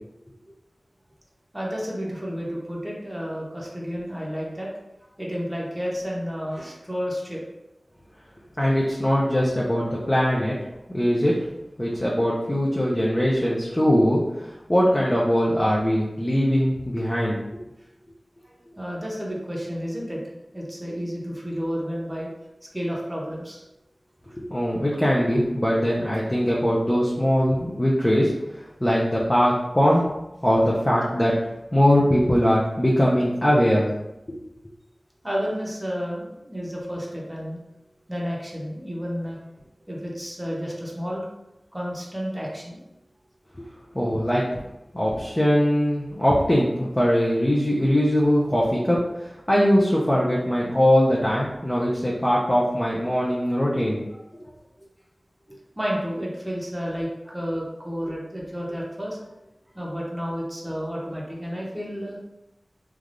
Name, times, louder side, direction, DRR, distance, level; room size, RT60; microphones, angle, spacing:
voice 1, 1.5-4.7 5.2-7.4 18.4-22.3 22.7-23.6 35.2-37.6 38.1-39.4 39.9-41.2 41.7-42.8 54.4-54.5 55.5-59.2 59.7-62.2, equal, 15° right, -4 dB, 0.7 m, -31 dB
voice 2, 8.6-10.5 10.9-11.4 11.8-17.4 24.5-30.0 30.4-31.3 31.7-33.9 43.9-44.4 44.9-54.0, equal, 20° left, -5 dB, 0.5 m, -21 dB
3.3 x 2.3 x 2.5 m, 0.93 s
wide cardioid pair, 60°, 0 cm